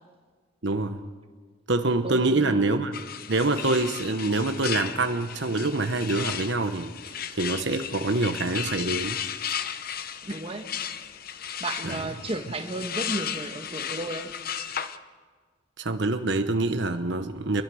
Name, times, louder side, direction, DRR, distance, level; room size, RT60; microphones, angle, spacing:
voice 1, 0.6-1.0 1.7-2.9 3.3-6.9 7.3-9.2 11.8-12.0 15.8-17.6, right 2 dB, 60° right, 7 dB, 1.1 m, -25 dB
voice 2, 2.0-2.6 10.2-10.7 11.6-14.4, right 2 dB, 30° right, 5 dB, 1.6 m, -33 dB
sound 1, 2.9-15.0, left 8 dB, 45° left, 0.9 m, -35 dB
29.0 x 22.5 x 6.4 m, 1.5 s
head